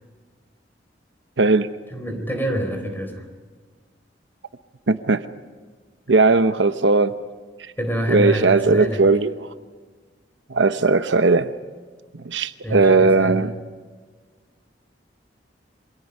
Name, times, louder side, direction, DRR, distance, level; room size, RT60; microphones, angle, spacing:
voice 1, 1.4-1.7 4.9-5.2 6.1-7.1 8.1-9.5 10.5-11.5 12.2-13.5, right 3 dB, 80° right, 11 dB, 0.9 m, -18 dB
voice 2, 1.9-3.2 7.8-9.0 12.6-13.4, equal, 10° left, 5 dB, 4.2 m, -26 dB
27.5 x 24.5 x 5.5 m, 1.5 s
head